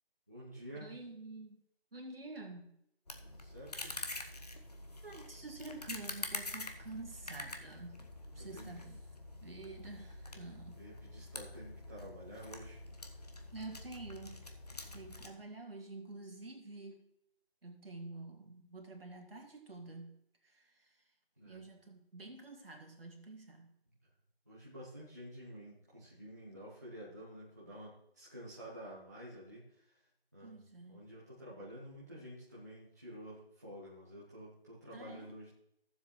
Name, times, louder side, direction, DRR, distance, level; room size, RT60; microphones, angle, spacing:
voice 1, 0.3-0.9 3.2-4.0 8.5-8.8 10.3-12.8 15.2-15.3 21.4-21.6 24.5-30.0 30.3-30.6 30.9-35.5, equal, 15° right, -8 dB, 0.8 m, -50 dB
voice 2, 0.8-1.6 1.9-2.8 5.0-8.1 8.3-9.0 9.4-10.9 13.5-14.5 14.9-17.1 17.6-20.2 20.4-21.0 21.4-23.7 30.4-31.0 34.9-35.3, right 2 dB, 65° right, 2 dB, 2.1 m, -48 dB
sound 1, 3.1-15.3, left 2 dB, 40° left, 0.7 m, -46 dB
15.0 x 7.3 x 3.1 m, 0.76 s
figure-of-eight pair, 170°, 32 cm